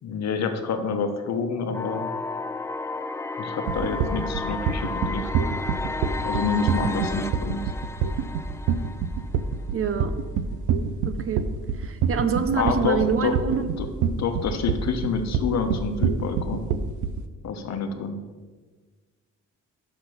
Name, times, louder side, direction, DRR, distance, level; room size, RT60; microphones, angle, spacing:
voice 1, 0.0-2.1 3.4-5.4 6.2-7.7 12.5-13.9 14.2-16.7 17.4-18.2, left 5 dB, 60° left, 6 dB, 1.0 m, -28 dB
sound 1, 1.7-9.7, left 3 dB, 10° left, 0.4 m, -33 dB
sound 2, 3.7-17.2, right 7 dB, 80° right, 0.6 m, -26 dB
voice 2, 9.7-10.1 11.0-11.4 11.7-13.7, right 6 dB, 45° right, 10 dB, 0.7 m, -26 dB
6.0 x 6.0 x 6.7 m, 1.4 s
cardioid pair, 90°, 30 cm